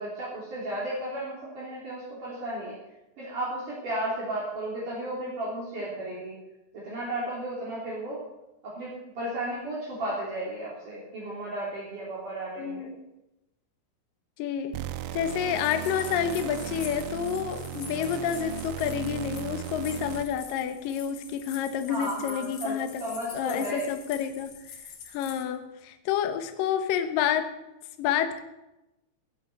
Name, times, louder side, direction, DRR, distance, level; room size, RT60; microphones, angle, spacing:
voice 1, 0.0-2.7 3.2-6.3 6.7-8.2 8.6-12.9 21.9-23.8, right 1 dB, 45° right, -7 dB, 4.5 m, -34 dB
voice 2, 12.6-13.1 14.4-14.7 15.1-23.0 23.3-24.5 25.1-27.5 28.0-28.4, left 9 dB, 75° left, 7 dB, 2.1 m, -29 dB
sound 1, 14.7-20.5, right 12 dB, 80° right, 2.9 m, -37 dB
sound 2, 15.6-25.4, left 6 dB, 60° left, 3.4 m, -46 dB
17.0 x 8.4 x 6.8 m, 0.94 s
omnidirectional pair, 5.5 m